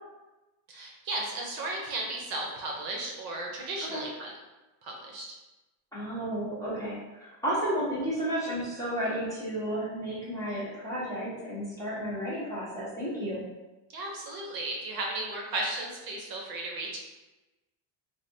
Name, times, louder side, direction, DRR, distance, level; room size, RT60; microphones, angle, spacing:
voice 1, 0.7-4.3 4.8-5.3 13.9-17.0, right 2 dB, 45° right, 0 dB, 0.6 m, -35 dB
voice 2, 5.9-13.4, right 1 dB, 5° left, -10 dB, 0.5 m, -32 dB
3.4 x 2.3 x 2.6 m, 1.1 s
cardioid pair, 150°, 50 cm